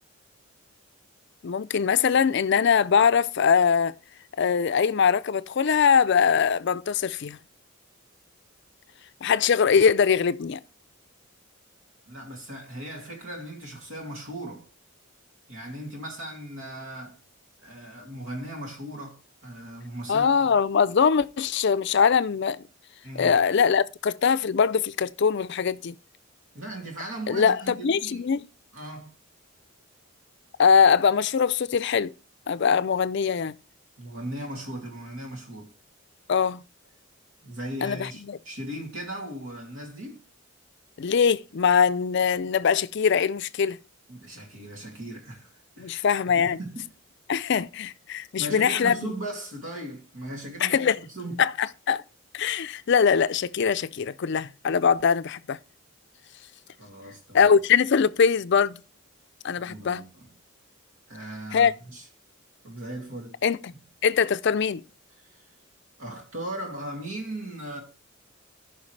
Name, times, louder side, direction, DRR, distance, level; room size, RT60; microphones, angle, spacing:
voice 1, 1.4-3.9 4.4-7.4 9.2-10.6 20.1-22.6 23.2-25.9 27.3-28.4 30.6-32.1 32.5-33.5 36.3-36.6 37.8-38.4 41.0-43.8 45.8-46.6 47.3-49.1 50.6-51.0 51.4-52.0 52.3-55.6 57.3-58.8 59.4-60.0 61.5-61.7 63.4-63.6 64.0-64.8, left 6 dB, 55° left, 0.4 m, -22 dB
voice 2, 12.1-14.6 15.5-17.2 17.6-20.6 23.0-23.3 26.5-28.3 28.7-29.1 34.0-35.7 37.4-40.2 44.1-46.1 46.3-46.9 48.4-51.4 56.8-57.5 59.6-60.3 61.1-62.1 62.6-63.4 63.7-63.8 65.3-65.4 66.0-67.8, right 1 dB, 75° right, 2.6 m, -38 dB
13.5 x 5.7 x 3.2 m
head